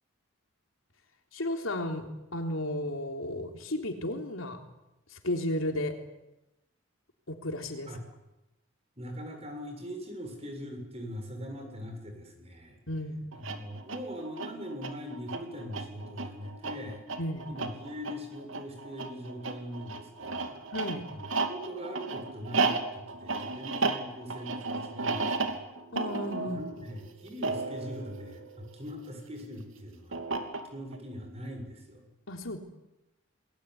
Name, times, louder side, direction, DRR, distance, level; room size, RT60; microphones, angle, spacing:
voice 1, 1.3-4.6 5.1-6.0 7.3-7.9 12.9-13.3 17.2-17.5 20.7-21.0 25.9-26.6 32.3-32.6, left 1 dB, 80° left, 5 dB, 3.7 m, -33 dB
voice 2, 9.0-12.8 13.3-17.0 17.5-20.6 21.1-25.6 26.5-30.2 30.7-32.0, equal, 30° right, 4 dB, 7.2 m, -41 dB
sound 1, 13.3-29.1 30.1-31.0, right 3 dB, 70° right, 2.8 m, -34 dB
28.5 x 20.5 x 9.6 m, 0.93 s
head